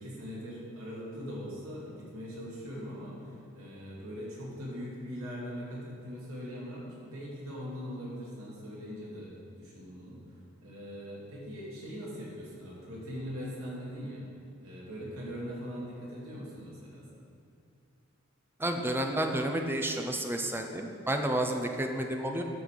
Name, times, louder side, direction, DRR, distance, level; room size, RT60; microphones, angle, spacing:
voice 1, 0.0-9.3 9.6-10.2 10.6-14.3 14.6-17.2, equal, 75° right, -6 dB, 2.7 m, -41 dB
voice 2, 18.6-22.4, right 1 dB, 10° right, 4 dB, 0.6 m, -31 dB
10.5 x 5.6 x 6.6 m, 2.5 s
head